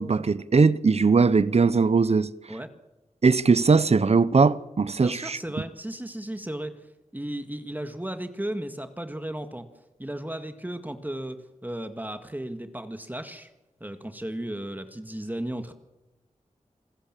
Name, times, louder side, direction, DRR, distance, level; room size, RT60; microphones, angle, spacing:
voice 1, 0.0-2.3 3.2-5.4, right 4 dB, 55° right, 0.9 m, -20 dB
voice 2, 5.0-6.7 7.1-9.7 10.0-13.5 13.8-15.7, right 1 dB, 15° right, 1.8 m, -35 dB
27.5 x 15.5 x 7.5 m
wide cardioid pair, 65°, 13 cm